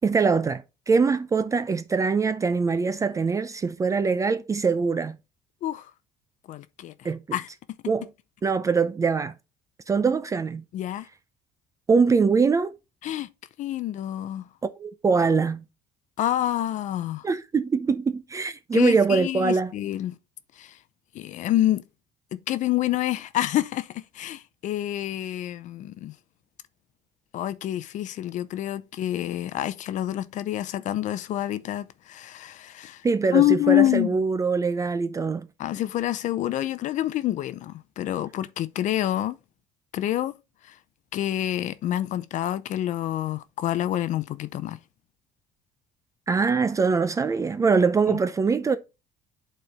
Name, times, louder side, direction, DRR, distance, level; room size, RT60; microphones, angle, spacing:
voice 1, 0.0-5.2 7.0-7.2 7.9-8.1 8.4-9.3 9.9-10.6 11.9-12.7 14.8-15.6 17.2-19.7 33.0-35.5 46.3-48.8, right 5 dB, 20° right, 0.5 m, -23 dB
voice 2, 6.5-7.5 10.7-11.1 13.0-13.3 13.6-14.4 16.2-17.3 18.7-20.2 20.6-20.8 21.1-21.8 22.3-26.1 27.3-33.0 33.3-34.2 35.6-39.4 39.9-40.4 40.7-40.8 41.1-44.8 48.1-48.2, left 13 dB, 55° left, 0.7 m, -27 dB
8.1 x 4.4 x 3.5 m
cardioid pair, 135°, 15 cm